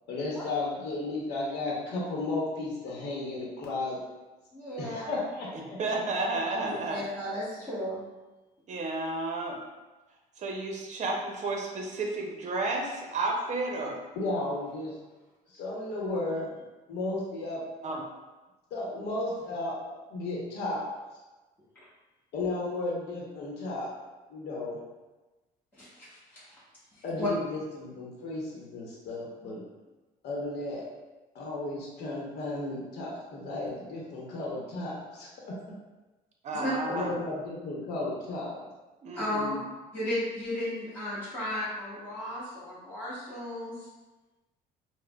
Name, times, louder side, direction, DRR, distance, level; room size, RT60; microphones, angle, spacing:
voice 1, 0.1-4.0 4.8-6.0 14.2-15.0 15.5-16.5 16.9-17.6 18.7-20.9 22.3-23.9 24.3-24.8 27.0-29.6 30.2-30.8 31.3-35.7 36.9-38.6, left 2 dB, 75° left, -4 dB, 0.9 m, -34 dB
voice 2, 4.5-5.2 6.6-8.0 21.7-21.8 25.7-26.6 27.0-27.3 36.5-36.7 39.1-39.6 39.9-43.9, left 1 dB, 10° left, -11 dB, 1.1 m, -35 dB
voice 3, 5.8-7.0 8.7-9.6 10.4-14.0 17.8-18.0 36.4-37.1 39.0-39.6, right 2 dB, 45° right, 0 dB, 0.7 m, -32 dB
4.7 x 2.1 x 2.3 m, 1.1 s
cardioid pair, 110°, 17 cm